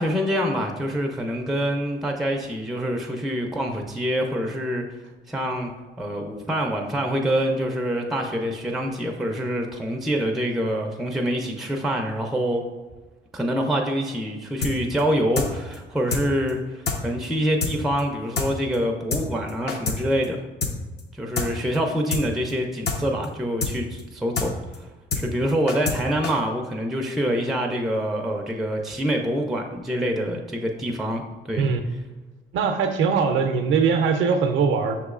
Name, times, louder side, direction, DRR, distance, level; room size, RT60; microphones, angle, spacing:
voice 1, 0.0-4.8 5.3-5.7 6.0-12.6 13.3-20.4 21.1-24.9 25.1-31.2 31.5-31.7, equal, ahead, 2 dB, 0.4 m, -26 dB
sound 1, 14.6-14.7 15.0-15.1 15.4-15.5 15.7-15.8 16.1-16.2 16.5-16.6 16.9-17.0 17.2-17.3 17.6-17.7 18.0-18.1 18.4-18.5 18.7-18.8 19.1-19.2 19.5-20.0 20.2-20.3 20.6-20.7 21.0-21.1 21.4-21.5 21.7-21.8 22.1-22.2 22.5-22.6 22.9-23.0 23.2-23.3 23.6-23.7 24.0-24.1 24.4-24.5 24.7-24.8 25.1-25.2 25.5-26.0 26.2-26.3, left 4 dB, 55° left, 0.7 m, -26 dB
voice 2, 32.5-35.0, right 5 dB, 75° right, 6 dB, 0.4 m, -21 dB
5.9 x 3.0 x 2.4 m, 1.2 s
cardioid pair, 90°, 20 cm